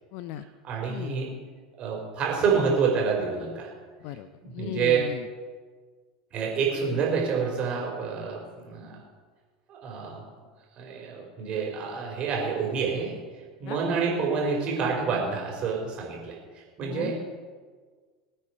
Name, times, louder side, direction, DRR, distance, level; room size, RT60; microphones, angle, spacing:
voice 1, 0.1-0.4 0.9-1.2 4.0-5.2 13.7-13.8 16.8-17.1, left 12 dB, 50° left, 14 dB, 0.7 m, -37 dB
voice 2, 0.6-1.3 1.8-3.7 4.4-5.1 6.3-9.0 9.7-10.2 10.8-13.1 13.6-17.1, right 5 dB, 40° right, -1 dB, 5.1 m, -28 dB
23.5 x 9.1 x 4.8 m, 1.5 s
figure-of-eight pair, 75°, 3 cm